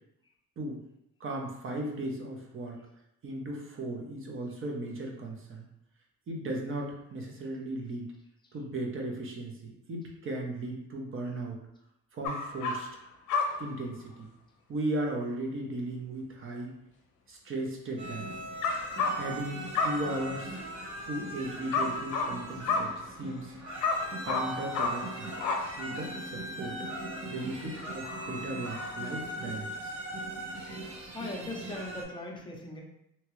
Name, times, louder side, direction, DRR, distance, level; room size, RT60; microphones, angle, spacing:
voice 1, 1.2-2.8 3.2-5.6 6.3-8.0 8.5-11.6 12.1-12.9 13.6-14.3 14.7-16.7 17.3-18.3 19.2-20.5 21.1-22.9 23.2-23.5 24.2-25.3 25.8-26.8 27.3-29.9, right 1 dB, 45° right, 1 dB, 0.7 m, -36 dB
sound 1, 12.2-13.0 13.3-13.8 18.6-19.5 19.7-20.4 21.7-23.4 23.8-26.0 26.4-26.5 27.4-27.5 28.0-29.1 29.5-29.6, left 4 dB, 80° left, 0.5 m, -32 dB
sound 2, 18.0-32.0, right 1 dB, 85° right, 1.0 m, -39 dB
voice 2, 31.1-32.8, left 2 dB, 15° left, 0 dB, 0.7 m, -39 dB
2.9 x 2.3 x 3.1 m, 0.80 s
cardioid pair, 90°, 30 cm